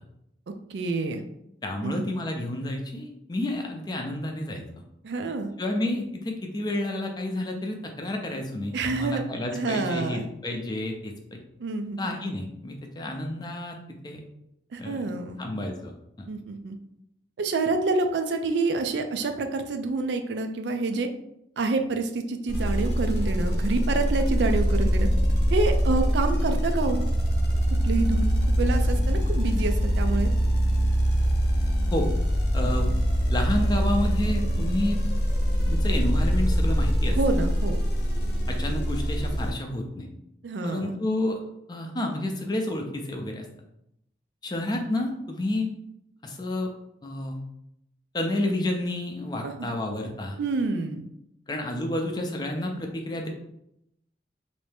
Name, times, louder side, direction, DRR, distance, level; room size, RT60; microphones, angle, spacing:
voice 1, 0.7-1.2 1.8-2.0 5.0-5.5 8.7-9.2 9.5-10.2 11.6-12.2 14.7-15.4 16.3-16.8 17.4-21.1 21.6-25.1 25.5-27.1 27.8-30.3 32.6-32.7 37.1-37.8 40.4-40.9 49.4-49.7 50.4-51.0, right 3 dB, 70° right, 6 dB, 0.4 m, -27 dB
voice 2, 1.6-4.6 5.6-11.4 12.0-13.8 14.0-14.2 14.8-15.1 15.4-15.9 31.9-32.1 32.5-32.9 33.3-35.0 35.7-37.2 38.5-40.1 40.6-41.4 41.7-43.5 44.4-45.7 46.2-46.7 47.0-47.4 48.1-50.4 51.5-53.3, left 1 dB, 20° left, 2 dB, 0.4 m, -30 dB
sound 1, 22.5-39.5, equal, 60° left, 0.7 m, -23 dB
3.2 x 2.6 x 3.4 m, 0.80 s
head